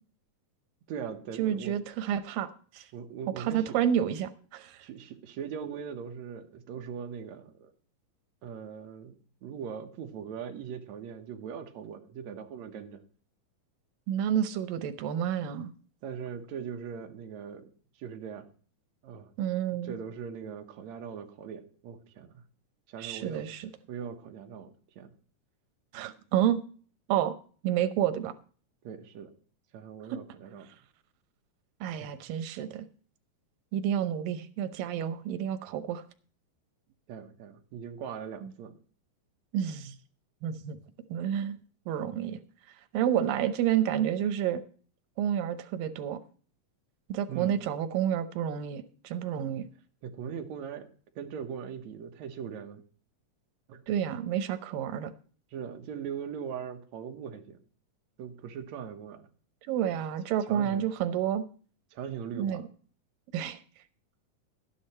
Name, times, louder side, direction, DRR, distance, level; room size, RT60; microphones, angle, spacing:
voice 1, 0.9-1.8 2.9-3.6 4.8-7.7 8.4-13.0 16.0-17.7 18.0-18.5 19.0-19.3 19.8-22.4 22.9-23.5 23.9-25.1 28.8-29.3 29.7-30.7 32.0-32.1 37.1-38.7 47.3-47.5 49.3-49.4 50.0-50.9 51.2-52.8 53.7-53.8 55.5-57.6 58.2-59.2 60.5-60.8 61.9-62.7, right 7 dB, 65° right, 4 dB, 2.3 m, -40 dB
voice 2, 1.4-2.5 2.7-2.9 3.4-4.8 14.1-15.7 19.4-19.9 23.0-23.7 25.9-26.6 27.1-27.3 27.6-28.3 30.1-30.2 31.8-32.9 33.7-36.0 38.4-38.5 39.5-40.0 40.4-40.8 41.1-41.6 41.9-42.4 42.9-44.6 45.2-46.2 47.1-49.7 53.9-55.1 59.7-61.4 62.3-62.6 63.3-63.6, right 10 dB, 90° right, 11 dB, 2.6 m, -29 dB
13.0 x 10.0 x 4.3 m, 0.42 s
omnidirectional pair, 3.9 m